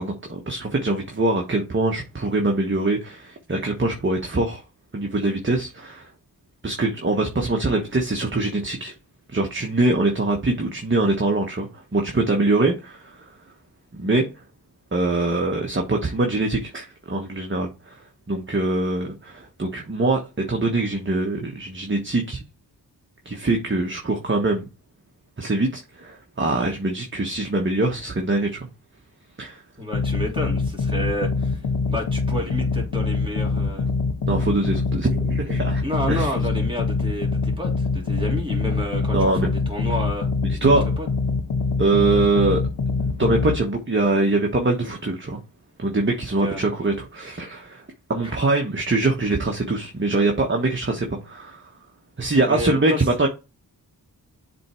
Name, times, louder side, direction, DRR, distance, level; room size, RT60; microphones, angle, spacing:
voice 1, 0.0-4.6 4.9-6.1 6.6-8.9 9.3-13.2 14.0-14.3 14.9-18.0 18.3-22.4 23.2-24.7 25.4-28.6 29.4-29.6 34.3-35.8 36.1-36.3 39.1-39.5 40.4-40.9 41.8-42.6 43.0-45.4 45.8-47.8 48.1-51.7 52.2-53.3, right 2 dB, 30° right, 1.3 m, -23 dB
voice 2, 29.8-31.6 31.9-33.9 35.8-40.3 41.0-41.1 46.4-46.6 48.2-48.4 52.5-53.1, equal, 15° right, 3.1 m, -30 dB
sound 1, 29.9-43.6, left 4 dB, 85° left, 1.3 m, -24 dB
7.5 x 3.6 x 4.4 m
cardioid pair, 65°, 38 cm